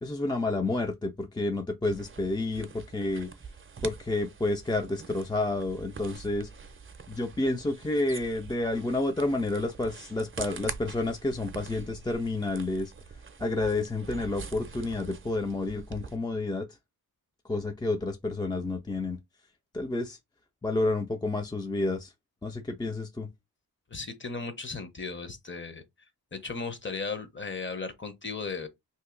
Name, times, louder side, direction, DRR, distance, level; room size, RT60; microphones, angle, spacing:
voice 1, 0.0-3.3 3.8-6.5 7.1-12.9 13.4-16.7 17.5-19.2 19.7-20.2 20.6-22.1 22.4-23.3, left 2 dB, 10° left, 0.4 m, -30 dB
sound 1, 1.9-16.2, right 5 dB, 30° right, 0.6 m, -44 dB
voice 2, 23.9-25.8 26.3-28.7, left 4 dB, 30° left, 0.8 m, -36 dB
2.8 x 2.6 x 3.7 m
cardioid pair, 65°, 39 cm